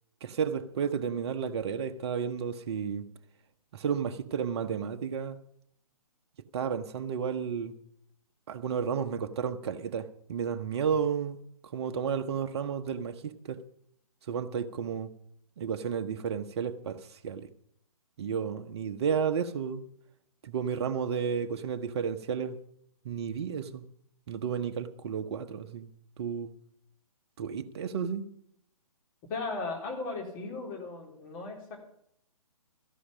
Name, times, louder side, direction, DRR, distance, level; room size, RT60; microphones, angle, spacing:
voice 1, 0.2-3.1 3.7-5.4 6.5-7.8 8.5-11.4 11.7-13.6 14.3-15.1 15.6-17.5 18.2-19.8 20.4-22.6 23.0-23.8 24.3-25.9 26.2-26.5 27.4-28.3, right 7 dB, 45° right, 1.0 m, -32 dB
voice 2, 29.3-31.8, left 3 dB, 30° left, 3.7 m, -36 dB
13.5 x 11.5 x 5.1 m
figure-of-eight pair, 135°, 19 cm